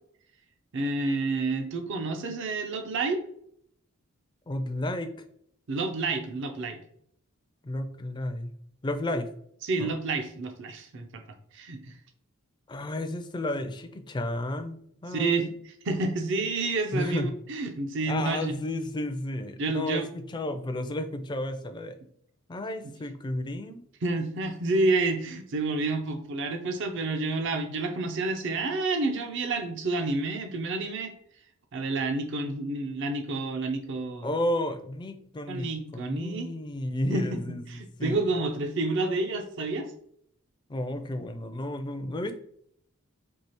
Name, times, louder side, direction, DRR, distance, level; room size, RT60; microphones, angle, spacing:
voice 1, 0.7-3.2 5.7-6.8 9.6-11.2 11.5-12.0 15.1-15.5 15.8-18.5 19.6-20.1 22.8-22.9 24.0-31.1 31.7-34.3 35.5-36.5 37.1-37.4 37.7-39.9, right 3 dB, 55° right, 5 dB, 0.5 m, -29 dB
voice 2, 4.5-5.1 7.6-8.5 8.8-9.3 9.8-9.9 12.7-15.5 16.9-17.3 18.1-22.0 22.5-23.8 34.2-35.7 35.9-38.2 40.7-42.3, left 1 dB, 20° left, 8 dB, 0.3 m, -32 dB
4.6 x 2.7 x 2.9 m, 0.67 s
head